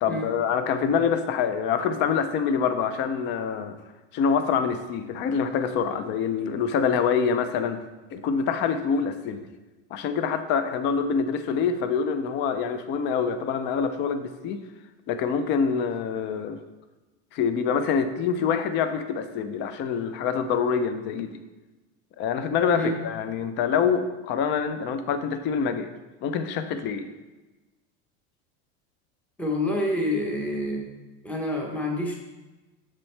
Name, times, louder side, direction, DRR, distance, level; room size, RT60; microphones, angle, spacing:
voice 1, 0.0-3.8 4.1-7.8 8.1-9.4 9.9-14.6 15.1-16.6 17.3-21.4 22.2-25.9 26.2-27.1, left 6 dB, 35° left, 10 dB, 0.4 m, -25 dB
voice 2, 29.4-30.9 31.2-32.2, left 1 dB, 5° left, 0 dB, 0.7 m, -27 dB
7.3 x 7.3 x 3.2 m, 1.1 s
cardioid pair, 165°, 34 cm